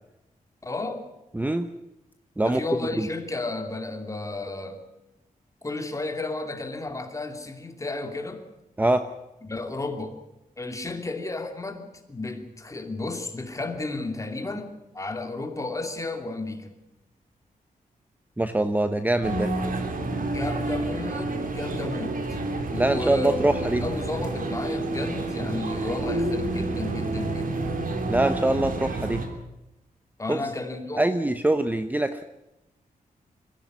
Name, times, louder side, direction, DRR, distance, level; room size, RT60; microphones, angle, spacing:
voice 1, 0.6-1.0 2.4-4.8 5.6-8.5 9.4-10.2 10.6-16.7 20.3-22.2 22.7-27.8 30.2-31.1, left 2 dB, 20° left, 5 dB, 2.8 m, -33 dB
voice 2, 1.3-1.7 2.4-2.6 3.0-3.1 8.8-9.0 18.4-19.5 22.8-23.8 28.1-29.2 30.3-30.5 31.0-32.2, right 2 dB, 10° right, 9 dB, 0.9 m, -23 dB
sound 1, 19.2-29.3, right 2 dB, 75° right, 3.3 m, -29 dB
22.5 x 15.0 x 9.5 m, 0.93 s
wide cardioid pair, 130°, 14 cm